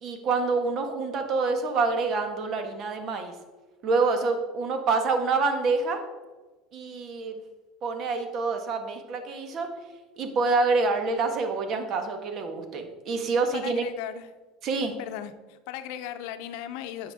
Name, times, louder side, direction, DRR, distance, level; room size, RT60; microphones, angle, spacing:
voice 1, 0.0-3.3 3.8-6.0 6.7-7.4 7.8-9.7 10.2-13.8 14.6-14.9, right 4 dB, 50° right, 6 dB, 1.5 m, -27 dB
voice 2, 13.5-14.3 15.0-17.1, left 11 dB, 70° left, 10 dB, 0.7 m, -37 dB
9.8 x 7.1 x 3.6 m, 1.2 s
supercardioid pair, 95°, 0 cm